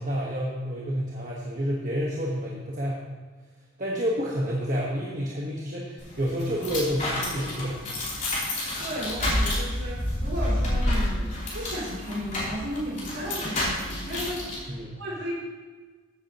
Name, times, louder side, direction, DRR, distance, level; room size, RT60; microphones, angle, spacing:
voice 1, 0.0-3.0 3.8-7.8 14.7-15.0, equal, 40° right, -3 dB, 1.2 m, -29 dB
sound 1, 6.0-14.6, left 1 dB, 40° left, 3.1 m, -29 dB
voice 2, 8.8-15.3, equal, 75° right, -7 dB, 3.0 m, -34 dB
14.5 x 8.6 x 2.9 m, 1.4 s
head